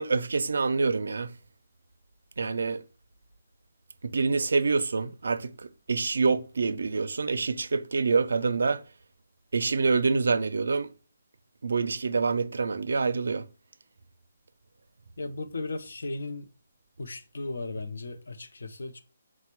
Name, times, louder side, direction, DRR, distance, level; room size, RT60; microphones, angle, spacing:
voice 1, 0.0-1.3 2.4-2.8 4.1-8.8 9.5-10.9 11.6-13.4, right 4 dB, 75° right, 0.4 m, -26 dB
voice 2, 15.2-16.5 17.0-19.0, left 3 dB, 75° left, 0.6 m, -36 dB
4.2 x 2.1 x 4.4 m
hypercardioid pair, 175°, 0 cm